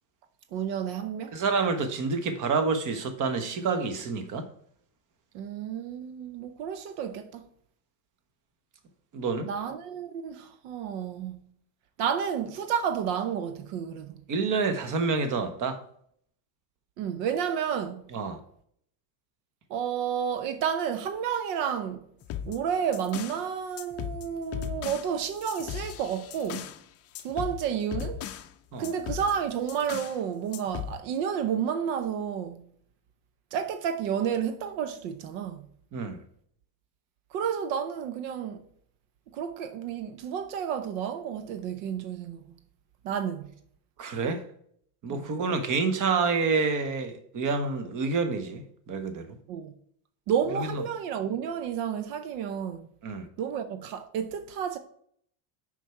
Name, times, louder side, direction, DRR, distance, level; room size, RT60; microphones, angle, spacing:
voice 1, 0.5-1.4 5.3-7.5 9.4-11.4 12.0-14.2 17.0-18.0 19.7-22.0 22.5-26.7 27.2-28.2 28.8-32.7 33.5-35.6 37.3-38.7 39.3-42.6 43.0-43.5 45.1-45.3 49.5-49.7 50.3-52.9 53.4-54.8, right 8 dB, 80° right, 0.8 m, -31 dB
voice 2, 1.3-4.5 9.1-9.5 14.3-15.8 18.1-18.4 28.7-28.9 35.9-36.2 44.0-44.4 45.0-49.4 50.7-50.8 53.0-53.3, right 4 dB, 40° right, 1.1 m, -28 dB
sound 1, 22.2-23.4 23.8-26.8 27.1-28.5 28.8-30.2 30.5-31.0, left 10 dB, 30° left, 0.5 m, -37 dB
6.3 x 5.2 x 4.5 m
cardioid pair, 140°, 48 cm